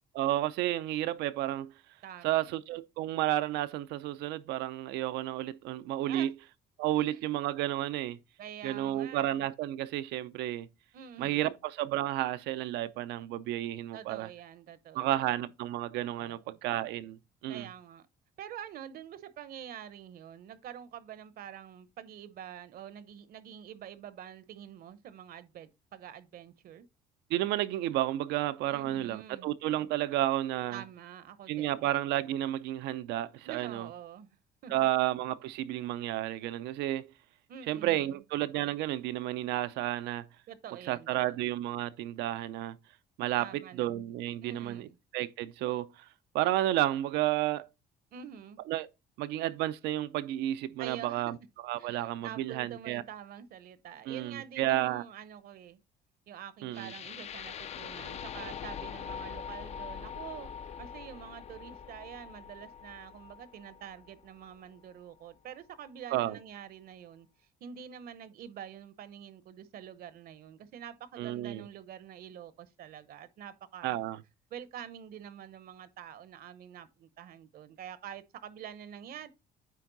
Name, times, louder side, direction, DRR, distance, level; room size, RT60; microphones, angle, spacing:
voice 1, 0.1-1.7 2.2-6.3 6.8-8.2 8.6-10.7 11.2-14.3 14.9-17.7 27.3-30.8 31.5-33.9 34.7-37.1 37.7-40.2 40.9-42.8 43.2-43.5 43.7-44.9 45.1-46.0 46.3-47.7 48.7-48.9 49.2-51.4 51.6-53.0 54.1-55.0 56.6-56.9 66.1-66.4 71.2-71.7 73.8-74.2, right 14 dB, 85° right, 0.6 m, -31 dB
voice 2, 2.0-2.5 6.1-6.3 7.0-7.3 8.4-9.3 10.9-11.5 13.9-15.4 16.2-16.6 17.5-18.1 18.4-26.9 28.7-29.5 30.7-31.9 33.4-34.4 34.6-35.0 37.5-38.2 40.5-41.4 43.4-44.0 44.4-45.0 48.1-48.6 50.8-51.3 51.8-55.8 56.3-74.0 74.5-79.3, right 9 dB, 65° right, 0.9 m, -46 dB
sound 1, 56.7-64.8, left 8 dB, 40° left, 0.4 m, -43 dB
9.3 x 3.6 x 3.9 m
cardioid pair, 110°, 17 cm